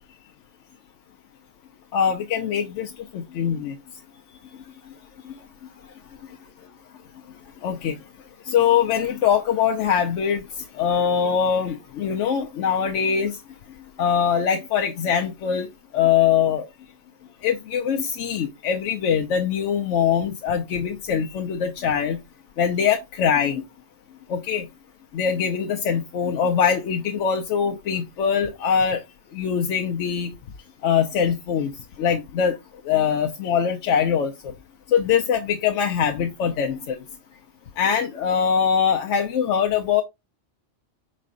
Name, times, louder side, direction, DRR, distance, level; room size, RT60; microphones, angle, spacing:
voice 1, 1.9-2.9 3.1-3.7 7.6-7.9 8.5-10.4 10.8-13.3 14.0-15.7 15.9-16.7 17.4-22.2 22.6-23.6 24.3-24.6 25.1-29.0 29.3-30.3 30.8-31.7 32.0-32.5 32.9-34.3 34.9-37.0 37.8-40.0, left 7 dB, 85° left, 0.9 m, -22 dB
5.0 x 4.1 x 2.4 m
omnidirectional pair, 1.2 m